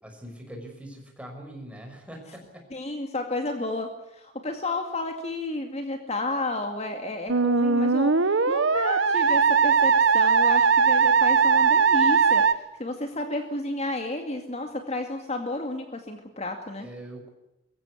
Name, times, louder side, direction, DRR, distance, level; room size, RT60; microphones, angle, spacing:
voice 1, 0.0-2.7 16.8-17.3, right 1 dB, 5° right, 2 dB, 5.8 m, -42 dB
voice 2, 2.7-16.9, left 2 dB, 35° left, 5 dB, 2.2 m, -32 dB
Musical instrument, 7.3-12.5, right 5 dB, 85° right, 1.1 m, -20 dB
23.0 x 15.5 x 9.8 m, 0.90 s
head